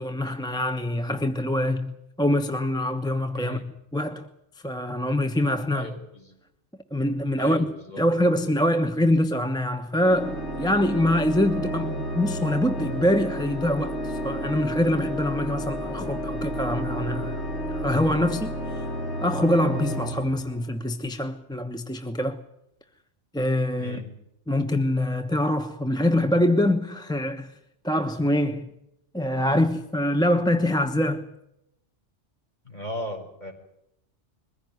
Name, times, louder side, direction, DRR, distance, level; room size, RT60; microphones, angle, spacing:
voice 1, 0.0-3.6 3.9-4.3 4.6-5.9 6.9-7.6 8.0-17.4 17.7-18.8 19.2-22.4 23.3-24.0 24.5-27.5 27.8-28.7 29.1-31.3, left 1 dB, 5° left, 1.0 m, -24 dB
voice 2, 3.3-3.6 5.7-6.4 7.4-8.0 23.7-24.1 32.6-33.5, left 1 dB, 40° left, 4.8 m, -37 dB
Organ, 10.0-20.9, equal, 75° left, 3.9 m, -31 dB
22.0 x 16.0 x 9.5 m
omnidirectional pair, 1.2 m